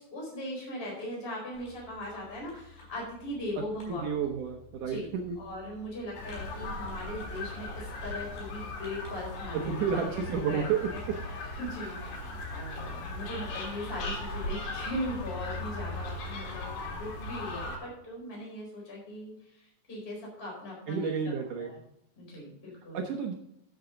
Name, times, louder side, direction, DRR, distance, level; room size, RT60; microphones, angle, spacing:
voice 1, 0.0-4.1 4.9-5.1 5.4-11.0 11.4-21.3 21.6-21.7 22.2-23.0, left 1 dB, 15° left, -3 dB, 4.3 m, -39 dB
Fireworks, 1.5-17.0, left 5 dB, 50° left, 5.6 m, -51 dB
voice 2, 3.9-5.4 9.5-10.8 20.9-21.7 22.9-23.3, right 6 dB, 80° right, 3 dB, 1.9 m, -31 dB
sound 1, 6.1-17.8, left 2 dB, 80° left, 4.5 m, -38 dB
12.0 x 8.0 x 3.8 m, 0.78 s
omnidirectional pair, 4.8 m